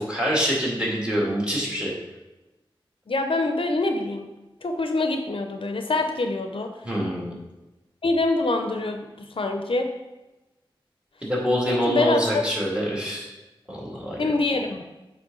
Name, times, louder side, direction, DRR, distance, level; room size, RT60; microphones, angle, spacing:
voice 1, 0.0-1.9 6.8-7.3 11.2-13.3 13.7-14.3, equal, 10° right, -3 dB, 1.9 m, -25 dB
voice 2, 3.1-4.3 4.6-6.7 8.0-9.9 11.7-12.4 14.2-14.8, left 2 dB, 70° left, 5 dB, 0.6 m, -25 dB
8.7 x 3.4 x 3.8 m, 1.0 s
wide cardioid pair, 75°, 9 cm